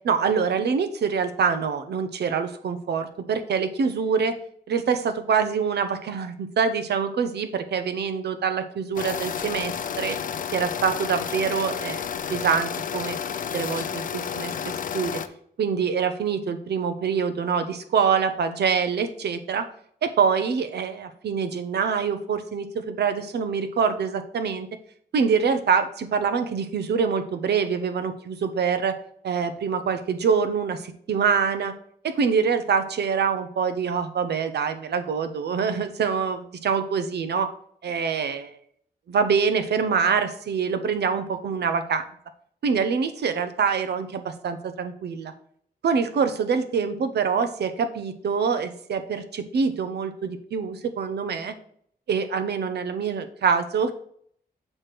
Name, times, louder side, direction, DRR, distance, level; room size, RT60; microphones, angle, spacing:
voice 1, 0.0-4.4 4.7-10.2 10.5-12.0 12.3-13.2 13.5-15.2 15.6-19.6 20.0-24.7 25.1-29.0 29.2-31.7 32.0-37.5 37.8-38.5 39.1-42.0 42.6-45.3 45.8-51.5 52.1-53.9, right 6 dB, 85° right, 9 dB, 0.7 m, -25 dB
sound 1, 9.0-15.3, left 8 dB, 55° left, 0.4 m, -31 dB
6.3 x 3.3 x 5.9 m, 0.63 s
wide cardioid pair, 180°, 17 cm